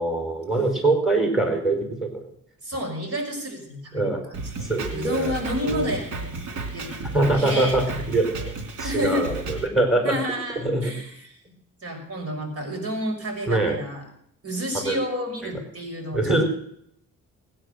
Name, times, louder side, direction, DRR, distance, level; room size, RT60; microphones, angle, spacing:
voice 1, 0.0-2.3 3.9-4.2 4.7-5.3 5.6-5.9 7.1-10.1 10.5-10.9 13.5-13.8 14.7-15.0 16.1-16.4, right 2 dB, ahead, 3 dB, 4.6 m, -23 dB
voice 2, 2.6-4.1 4.6-8.2 8.8-9.3 10.0-11.4 11.8-14.0 14.4-16.4, equal, 50° right, 2 dB, 5.4 m, -30 dB
Drum kit, 4.3-9.7, right 3 dB, 90° right, 3.3 m, -33 dB
19.0 x 9.7 x 6.5 m, 0.69 s
cardioid pair, 90°, 30 cm